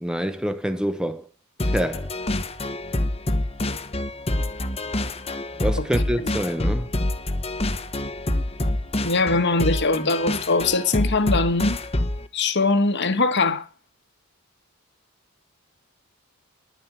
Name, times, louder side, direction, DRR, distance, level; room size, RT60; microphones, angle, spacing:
voice 1, 0.0-1.3 1.6-2.1 5.6-6.9, equal, 5° right, 0.9 m, -26 dB
sound 1, 1.6-12.3, left 1 dB, 30° left, 1.1 m, -26 dB
voice 2, 9.0-11.8 12.3-13.6, left 3 dB, 55° left, 1.5 m, -21 dB
11.5 x 10.5 x 5.9 m
head